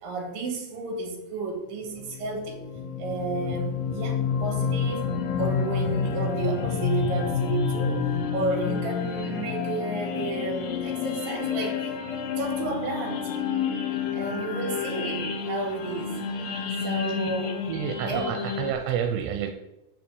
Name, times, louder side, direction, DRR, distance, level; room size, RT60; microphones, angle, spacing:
voice 1, 0.0-2.6 3.0-5.0 5.4-8.0 8.3-11.9 12.4-13.2 14.1-16.1 16.8-17.6 18.1-18.3, right 3 dB, 60° right, 1 dB, 3.7 m, -32 dB
sound 1, 2.0-18.7, left 6 dB, 80° left, 3.1 m, -29 dB
voice 2, 17.1-17.4 17.7-19.5, right 8 dB, 85° right, 5 dB, 2.9 m, -30 dB
7.6 x 6.3 x 7.0 m, 0.94 s
omnidirectional pair, 4.7 m